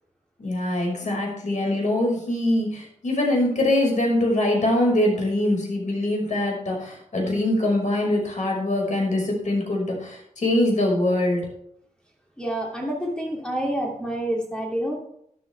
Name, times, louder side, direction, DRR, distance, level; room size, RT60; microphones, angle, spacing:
voice 1, 0.4-11.5, left 1 dB, 70° left, 0 dB, 5.6 m, -23 dB
voice 2, 12.4-15.0, right 1 dB, 5° left, -2 dB, 2.9 m, -28 dB
13.0 x 12.0 x 3.5 m, 0.71 s
wide cardioid pair, 100°, 13 cm